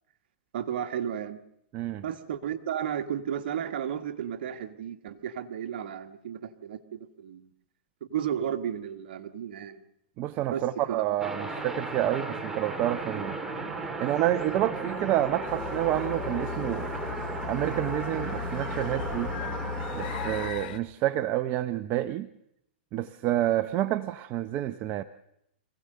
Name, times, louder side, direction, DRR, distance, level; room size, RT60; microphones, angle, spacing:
voice 1, 0.5-1.4 2.0-7.5 8.0-9.8 10.5-11.2, right 9 dB, 65° right, 1.6 m, -33 dB
voice 2, 1.7-2.0 10.2-13.4 14.0-16.9 17.5-19.3 19.9-22.3 22.9-25.0, right 13 dB, 35° right, 0.7 m, -28 dB
sound 1, 11.2-20.5, right 2 dB, 10° right, 2.2 m, -35 dB
sound 2, 15.5-20.8, left 8 dB, 55° left, 1.8 m, -37 dB
25.5 x 16.5 x 6.7 m
hypercardioid pair, 140°, 6 cm